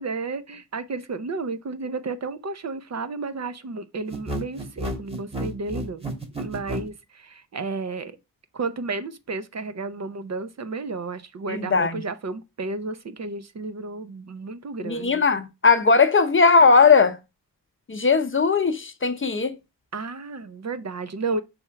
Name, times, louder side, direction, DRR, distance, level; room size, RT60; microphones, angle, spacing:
voice 1, 0.0-6.1 6.4-8.2 8.5-15.2 19.9-21.4, right 3 dB, 45° right, 0.7 m, -32 dB
sound 1, 4.1-6.9, right 1 dB, 15° right, 1.5 m, -31 dB
voice 2, 11.5-12.0 14.8-17.2 17.9-19.6, left 4 dB, 35° left, 0.7 m, -18 dB
5.5 x 3.5 x 5.7 m
wide cardioid pair, 110°, 36 cm